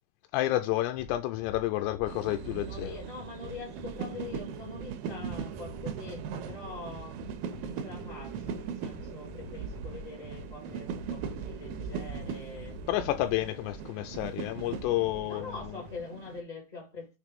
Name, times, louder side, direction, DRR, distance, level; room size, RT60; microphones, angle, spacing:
voice 1, 0.3-3.0 12.9-15.5, left 15 dB, 90° left, 2.7 m, -30 dB
sound 1, 1.0-16.0, left 2 dB, 70° left, 1.8 m, -49 dB
sound 2, 2.1-16.4, right 7 dB, 80° right, 2.3 m, -39 dB
voice 2, 2.5-7.2 7.6-12.8 13.6-13.7 15.2-17.2, left 4 dB, 45° left, 0.5 m, -44 dB
6.5 x 3.1 x 5.2 m
omnidirectional pair, 4.8 m